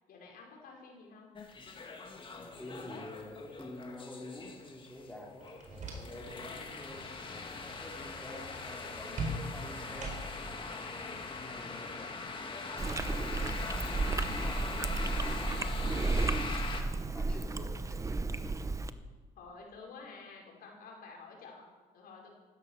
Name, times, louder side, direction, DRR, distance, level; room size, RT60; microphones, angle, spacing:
voice 1, 0.1-1.3 12.0-12.4 19.4-21.7 21.9-22.3, left 4 dB, 60° left, -1 dB, 5.2 m, -51 dB
sound 1, 1.4-16.8, left 4 dB, 30° left, 2.2 m, -42 dB
voice 2, 2.3-7.2 7.6-10.1 10.7-12.1 13.0-16.6 17.1-18.0, left 1 dB, 5° left, -2 dB, 3.0 m, -48 dB
sound 2, 5.4-6.4 6.7-7.1 9.2-10.6, right 2 dB, 45° right, 4.5 m, -40 dB
Chewing mastication, 12.8-18.9, right 3 dB, 20° right, 0.8 m, -33 dB
15.0 x 13.0 x 6.5 m, 1.4 s
cardioid pair, 110°, 17 cm